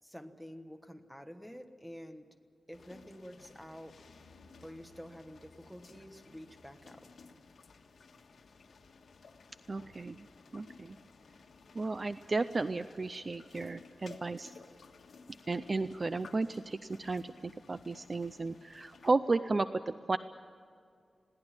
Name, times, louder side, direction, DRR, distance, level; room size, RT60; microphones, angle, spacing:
voice 1, 0.0-2.3 2.7-4.0 4.6-7.1, equal, ahead, 7 dB, 1.3 m, -49 dB
sound 1, 2.7-19.1, left 4 dB, 85° left, 1.5 m, -57 dB
voice 2, 9.7-10.3 10.5-11.0 11.7-14.5 15.5-20.2, right 3 dB, 35° right, 12 dB, 0.5 m, -33 dB
21.5 x 16.5 x 8.8 m, 2.2 s
wide cardioid pair, 175°, 0 cm